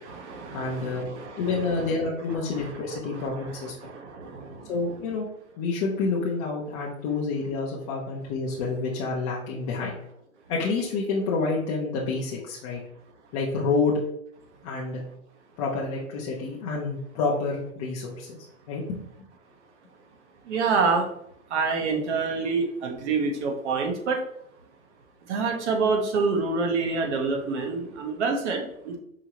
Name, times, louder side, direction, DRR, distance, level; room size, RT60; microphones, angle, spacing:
voice 1, 0.0-1.4 3.1-3.4 3.8-4.7 20.5-21.1 21.5-24.2 25.3-29.0, right 4 dB, 55° right, 3 dB, 1.0 m, -27 dB
voice 2, 0.5-1.0 1.4-3.9 4.7-5.3 5.6-10.0 10.5-12.8 13.3-14.0 14.6-15.0 15.6-18.4 18.7-19.0, left 4 dB, 30° left, -4 dB, 0.6 m, -28 dB
4.8 x 2.6 x 2.9 m, 0.73 s
hypercardioid pair, 145°, 40 cm